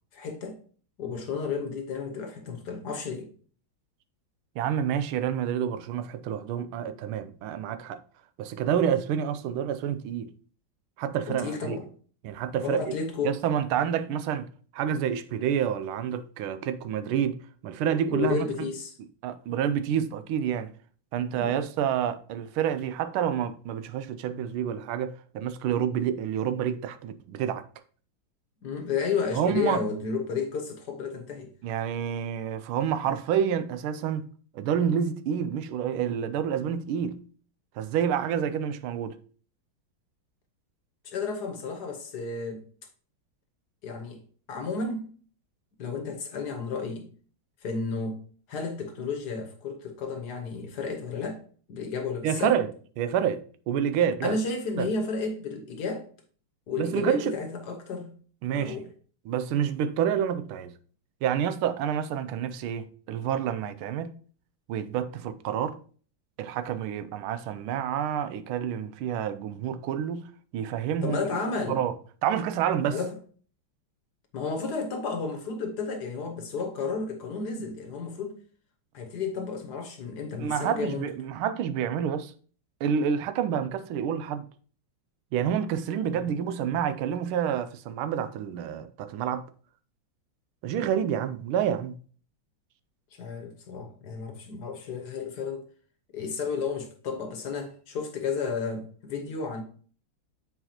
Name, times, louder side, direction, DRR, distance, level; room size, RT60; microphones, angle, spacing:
voice 1, 0.1-0.6 1.0-3.3 11.3-11.9 12.6-13.4 18.1-18.9 21.3-21.7 28.6-31.5 41.0-42.6 43.8-44.2 44.5-45.1 45.8-47.1 47.6-48.2 48.5-51.4 51.7-52.6 54.2-56.1 56.7-58.1 58.5-58.9 71.0-71.8 72.9-73.2 74.3-78.3 78.9-81.1 86.1-86.3 93.1-95.6 96.1-99.6, left 5 dB, 60° left, 1.4 m, -32 dB
voice 2, 4.6-8.0 8.4-10.3 11.0-11.8 12.2-12.8 13.2-14.5 14.7-18.5 19.2-20.7 21.1-27.7 29.3-29.8 31.6-34.2 34.5-37.2 37.8-39.2 52.2-52.7 53.0-54.4 54.8-54.9 56.8-57.3 58.4-58.8 59.3-60.7 61.2-64.1 64.7-65.8 66.4-70.3 70.5-71.4 71.7-71.9 72.2-73.0 80.4-82.3 82.8-84.4 85.3-89.4 90.6-91.9, right 8 dB, 90° right, 1.5 m, -28 dB
7.5 x 4.7 x 2.8 m
omnidirectional pair, 2.2 m